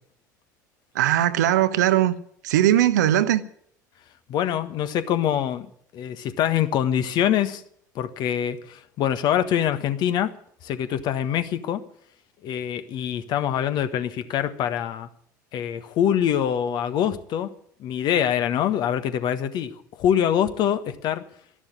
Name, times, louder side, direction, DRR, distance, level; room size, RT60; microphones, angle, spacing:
voice 1, 0.9-2.1 2.4-3.4, right 12 dB, 65° right, 1.1 m, -19 dB
voice 2, 4.3-5.7 5.9-7.6 7.9-10.3 10.6-11.8 12.4-15.1 15.5-17.5 17.8-21.2, left 9 dB, 45° left, 1.5 m, -24 dB
13.0 x 11.5 x 9.7 m
figure-of-eight pair, 70°, 10 cm